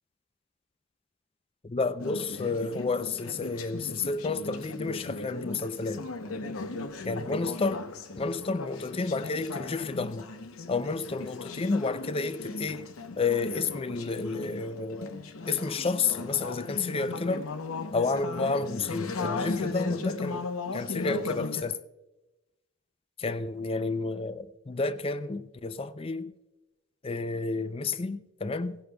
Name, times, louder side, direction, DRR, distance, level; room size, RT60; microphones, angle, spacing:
voice 1, 1.6-6.1 7.0-7.9 8.2-10.3 10.7-12.9 13.2-15.2 15.4-17.5 17.9-20.5 20.7-21.8 23.2-26.3 27.0-28.8, left 4 dB, 25° left, 0.4 m, -30 dB
Conversation / Chatter, 2.0-21.6, left 3 dB, 80° left, 0.8 m, -37 dB
17.0 x 16.5 x 2.3 m
head